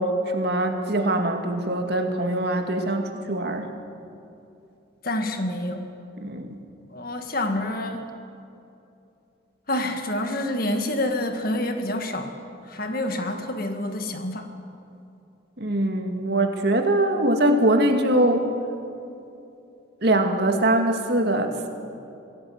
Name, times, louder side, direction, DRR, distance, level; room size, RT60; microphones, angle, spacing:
voice 1, 0.0-3.7 6.2-6.6 15.6-18.5 20.0-21.7, right 1 dB, 55° right, 4 dB, 2.2 m, -22 dB
voice 2, 5.0-5.9 6.9-8.1 9.7-12.3 12.7-14.5, left 1 dB, 45° left, 5 dB, 2.0 m, -27 dB
24.5 x 17.0 x 8.0 m, 2.7 s
head